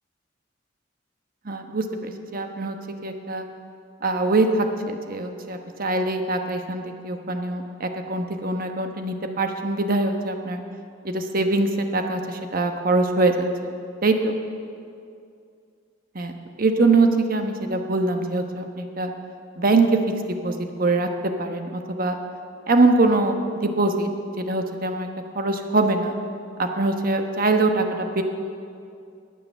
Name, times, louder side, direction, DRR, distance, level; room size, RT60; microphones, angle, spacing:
voice 1, 1.4-3.4 4.0-10.6 11.0-13.3 14.0-14.3 16.1-16.3 16.6-19.1 19.6-20.0 20.4-21.1 21.4-22.2 22.7-24.1 24.4-25.1 25.3-26.1 26.6-28.2, right 2 dB, 50° right, 5 dB, 1.1 m, -23 dB
20.5 x 6.9 x 6.8 m, 2.4 s
head